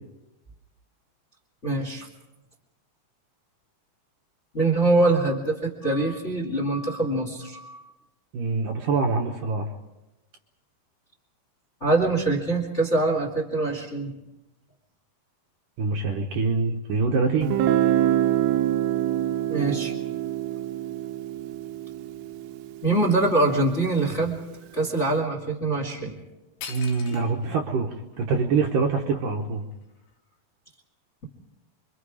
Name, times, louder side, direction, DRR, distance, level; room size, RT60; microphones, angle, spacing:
voice 1, 1.6-2.1 4.5-7.8 11.8-14.1 19.5-19.9 22.8-24.4 24.7-26.2, right 2 dB, 20° left, 1 dB, 1.9 m, -24 dB
voice 2, 8.3-9.7 15.8-17.5 26.7-29.6, right 4 dB, 65° right, 2 dB, 2.3 m, -25 dB
Guitar, 17.4-23.2, right 12 dB, 80° right, 3.1 m, -25 dB
sound 1, 26.2-26.3 26.6-27.6 28.1-28.2 28.8-30.2, left 7 dB, 70° left, 3.3 m, -42 dB
28.0 x 24.0 x 5.0 m, 1.0 s
omnidirectional pair, 5.0 m